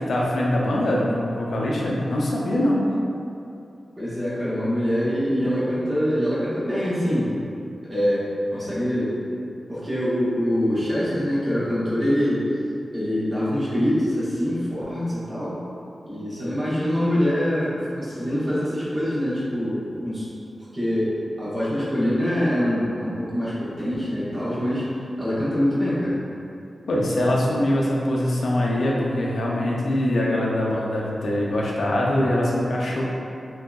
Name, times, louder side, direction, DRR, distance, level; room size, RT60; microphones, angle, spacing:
voice 1, 0.0-2.8 26.9-33.1, left 1 dB, 75° left, -4 dB, 0.4 m, -23 dB
voice 2, 4.0-7.4 7.9-9.2 9.7-12.5 12.9-15.6 16.0-20.3 20.7-21.1 21.4-24.9 25.2-26.2, equal, 30° right, -11 dB, 0.9 m, -24 dB
3.0 x 2.6 x 2.3 m, 2.6 s
wide cardioid pair, 130°, 0 cm